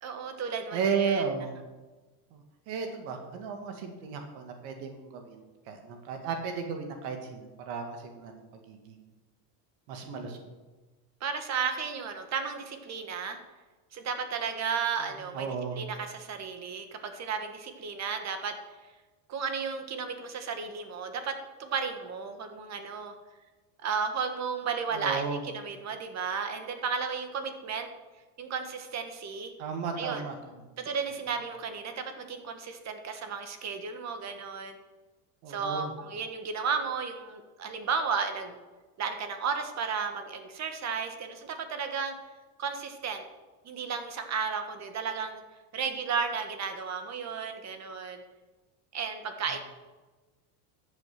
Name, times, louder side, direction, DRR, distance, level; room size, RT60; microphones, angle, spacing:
voice 1, 0.0-1.2 11.2-13.4 13.9-18.5 19.3-23.2 23.8-27.9 28.4-29.5 30.0-30.3 30.8-34.8 35.5-38.6 39.0-42.1 42.6-43.2 43.6-45.4 45.7-48.2 48.9-49.6, right 6 dB, 35° right, 7 dB, 1.7 m, -33 dB
voice 2, 0.7-1.6 2.3-9.0 9.9-10.4 15.3-15.8 24.9-25.4 29.6-30.6 35.4-35.9, right 5 dB, 65° right, 4 dB, 2.1 m, -34 dB
13.0 x 7.6 x 6.1 m, 1.2 s
supercardioid pair, 125°, 47 cm